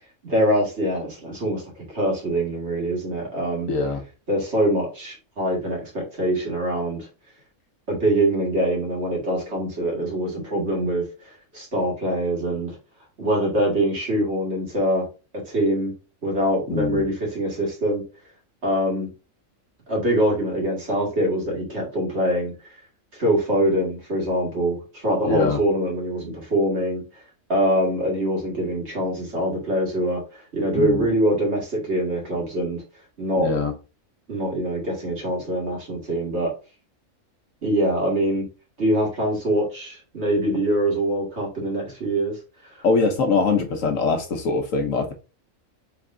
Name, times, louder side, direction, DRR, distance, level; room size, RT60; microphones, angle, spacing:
voice 1, 0.2-3.7 4.3-7.1 7.9-11.1 11.5-12.8 13.2-15.1 15.5-15.9 16.2-18.0 18.6-19.1 19.9-22.5 23.1-27.0 27.5-32.8 33.2-33.5 34.3-36.5 37.6-38.5 38.8-42.3 42.6-42.8, right 1 dB, 55° right, 2.1 m, -24 dB
voice 2, 3.7-4.0 16.7-17.0 25.2-25.6 30.7-31.0 33.4-33.7 42.8-45.1, left 4 dB, 75° left, 1.1 m, -22 dB
3.9 x 3.4 x 3.6 m
omnidirectional pair, 1.4 m